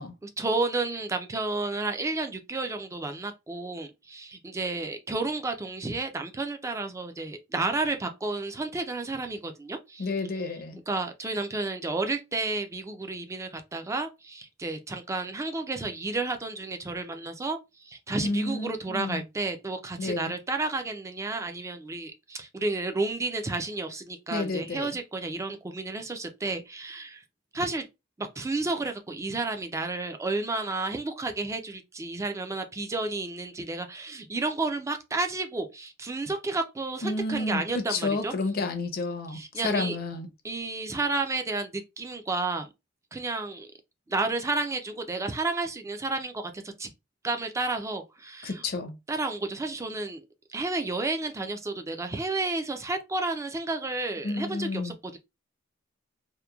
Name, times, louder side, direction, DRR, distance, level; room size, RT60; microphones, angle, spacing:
voice 1, 0.2-10.1 10.9-27.2 27.5-27.9 28.2-38.3 39.3-40.0 40.4-42.7 43.1-43.7 44.1-46.9 47.2-48.6 49.1-50.2 50.5-55.2, right 3 dB, 15° right, 0.3 m, -31 dB
voice 2, 10.0-10.8 18.2-19.2 20.0-20.3 24.3-25.0 37.0-40.3 48.4-48.9 54.2-54.9, left 3 dB, 50° left, 0.5 m, -30 dB
2.9 x 2.1 x 2.2 m
head